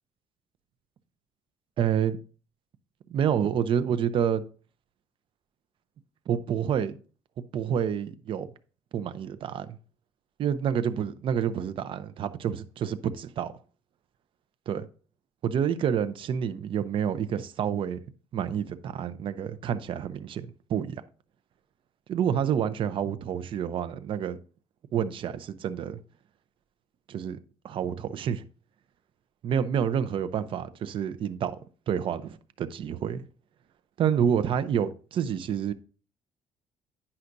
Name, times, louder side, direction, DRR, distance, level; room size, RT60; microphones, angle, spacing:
voice 1, 1.8-2.2 3.1-4.4 6.3-7.0 7.5-8.5 8.9-9.8 10.4-13.5 14.7-14.9 15.4-18.0 18.3-21.0 22.1-24.4 24.9-26.0 27.1-27.4 27.6-28.4 29.4-31.5 31.9-33.2 34.0-35.7, right 8 dB, 50° right, 0.7 m, -28 dB
9.7 x 5.7 x 2.6 m
cardioid pair, 120°, 11 cm